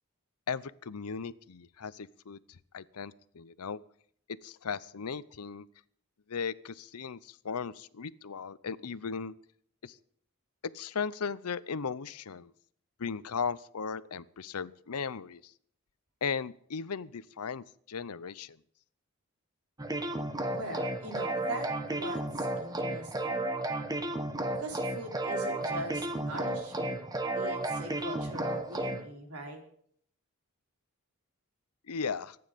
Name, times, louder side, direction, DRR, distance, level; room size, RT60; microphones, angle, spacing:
voice 1, 0.5-2.4 2.7-3.8 4.4-5.7 6.3-9.3 9.8-10.0 10.7-12.5 13.0-15.5 16.2-18.6 31.9-32.4, left 5 dB, 85° left, 17 dB, 0.7 m, -37 dB
sound 1, 19.8-29.0, right 1 dB, 15° right, 1.2 m, -33 dB
voice 2, 20.5-23.5 24.5-27.0 27.3-29.6, right 1 dB, 80° right, 2 dB, 4.1 m, -41 dB
24.5 x 9.6 x 5.2 m, 0.63 s
head